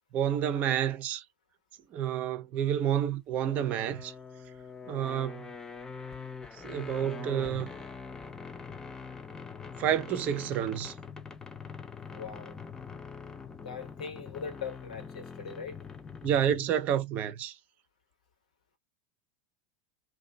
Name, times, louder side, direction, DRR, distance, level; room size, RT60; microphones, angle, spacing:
voice 1, 0.1-1.2 1.9-4.1 4.9-5.5 6.6-7.7 9.8-10.9 16.2-17.5, right 10 dB, 45° right, 0.6 m, -29 dB
sound 1, 3.4-16.8, left 5 dB, 15° left, 0.6 m, -44 dB
voice 2, 12.1-12.6 13.6-15.8, left 6 dB, 75° left, 1.1 m, -40 dB
2.7 x 2.3 x 2.2 m
hypercardioid pair, 85°, 4 cm